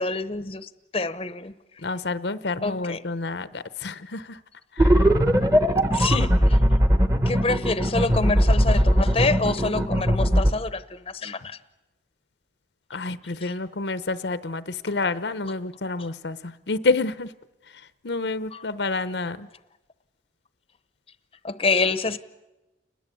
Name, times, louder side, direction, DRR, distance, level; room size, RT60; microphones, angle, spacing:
voice 1, 0.0-1.5 2.6-3.0 5.9-6.6 7.3-11.6 13.4-13.5 18.5-18.6 21.4-22.2, left 3 dB, 30° left, 0.8 m, -27 dB
voice 2, 1.8-4.4 4.7-5.1 12.9-17.3 18.0-19.5, left 3 dB, 75° left, 0.8 m, -29 dB
sound 1, 4.8-10.5, equal, 15° right, 1.2 m, -19 dB
29.5 x 21.0 x 8.4 m
head